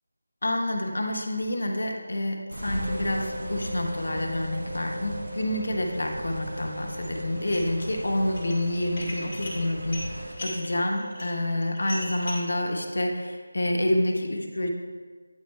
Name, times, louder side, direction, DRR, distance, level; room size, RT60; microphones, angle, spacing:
voice 1, 0.4-14.7, left 1 dB, 75° left, 1 dB, 1.0 m, -28 dB
sound 1, 2.5-10.3, right 1 dB, 55° right, 0.9 m, -38 dB
sound 2, 2.7-13.3, equal, 25° right, 1.7 m, -40 dB
Dishes pots and pans, 7.4-8.0 8.3-12.5, left 1 dB, 25° left, 1.5 m, -39 dB
9.0 x 4.6 x 3.2 m, 1.5 s
figure-of-eight pair, 175°, 0 cm